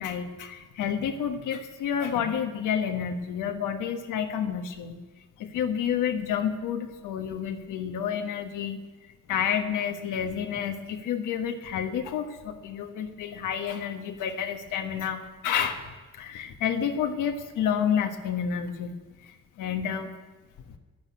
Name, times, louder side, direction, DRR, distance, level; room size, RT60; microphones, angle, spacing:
voice 1, 0.0-4.9 5.4-8.8 9.3-18.9 19.2-20.1, left 8 dB, 85° left, 6 dB, 1.4 m, -30 dB
12.0 x 11.0 x 8.3 m, 1.3 s
cardioid pair, 90°, 30 cm